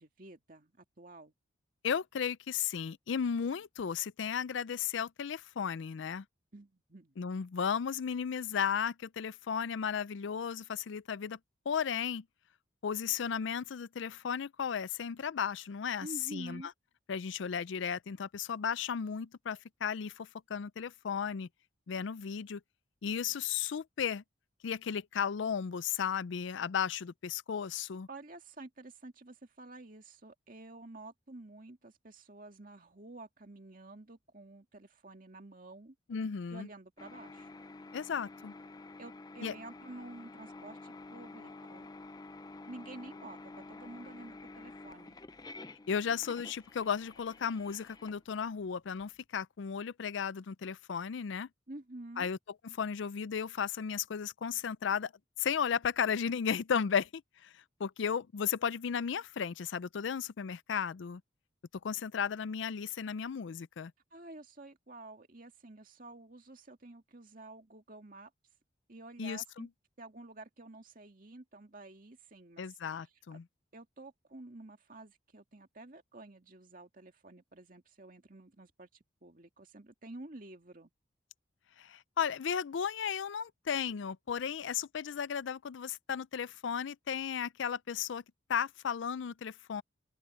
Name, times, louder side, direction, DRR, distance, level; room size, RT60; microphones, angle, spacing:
voice 1, 0.0-1.3 6.5-7.1 16.0-16.7 28.1-36.0 36.5-37.5 39.0-41.9 42.7-45.2 51.7-52.3 64.1-68.3 68.9-69.7 70.0-72.7 73.7-80.9, right 2 dB, 45° right, 2.2 m, -50 dB
voice 2, 1.8-6.2 7.2-11.4 11.7-12.2 12.8-16.6 17.1-21.5 21.9-22.6 23.0-24.2 24.6-28.1 36.1-36.7 37.9-38.5 39.4-39.5 45.9-51.5 52.2-52.4 52.6-55.1 55.4-61.2 61.8-63.9 69.2-69.7 72.6-73.4 81.8-88.2 88.5-89.8, left 7 dB, 70° left, 0.4 m, -35 dB
sound 1, 37.0-49.0, left 3 dB, 20° left, 0.5 m, -50 dB
open air
head